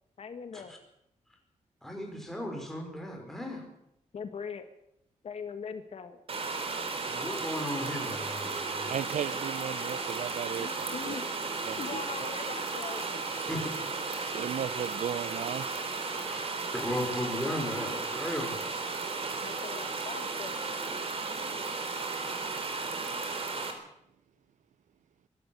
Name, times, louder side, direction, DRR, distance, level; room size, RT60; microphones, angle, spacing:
voice 1, 0.2-0.7 4.1-4.7 5.2-6.2 10.6-11.5 11.8-13.2 19.4-20.5, left 6 dB, 55° left, 8 dB, 1.6 m, -41 dB
voice 2, 1.8-3.6 7.1-8.9 13.5-13.6 16.3-18.7, left 1 dB, 5° left, 2 dB, 5.3 m, -36 dB
sound 1, 6.3-23.7, right 4 dB, 50° right, 3.8 m, -34 dB
voice 3, 8.9-11.2 11.6-12.0 13.3-13.5 14.3-15.7, right 9 dB, 80° right, 17 dB, 0.7 m, -36 dB
23.5 x 12.5 x 9.2 m, 0.79 s
wide cardioid pair, 175°, 12 cm